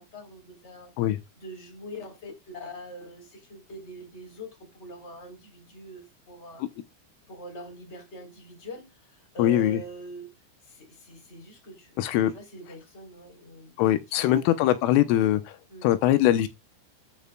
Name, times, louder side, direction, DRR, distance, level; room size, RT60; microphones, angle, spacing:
voice 1, 0.0-0.9 1.4-6.7 7.3-13.8 14.1-14.7 15.7-15.9, equal, 15° left, 3.1 m, -44 dB
voice 2, 9.4-9.8 12.0-12.3 13.8-15.6 15.8-16.5, left 13 dB, 85° left, 3.4 m, -22 dB
12.5 x 8.8 x 2.3 m
omnidirectional pair, 5.6 m